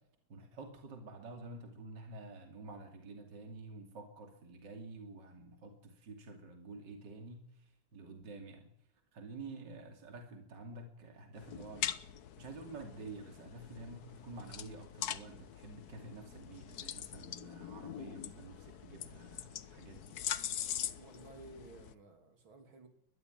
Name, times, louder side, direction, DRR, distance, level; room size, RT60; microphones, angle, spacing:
voice 1, 0.3-8.7 9.1-11.9 12.4-20.2, right 3 dB, 60° right, 4 dB, 3.3 m, -49 dB
sound 1, 11.4-21.9, left 10 dB, 55° left, 1.3 m, -43 dB
voice 2, 21.0-22.9, right 3 dB, 75° right, 6 dB, 4.0 m, -54 dB
21.5 x 13.5 x 9.4 m, 0.76 s
omnidirectional pair, 2.2 m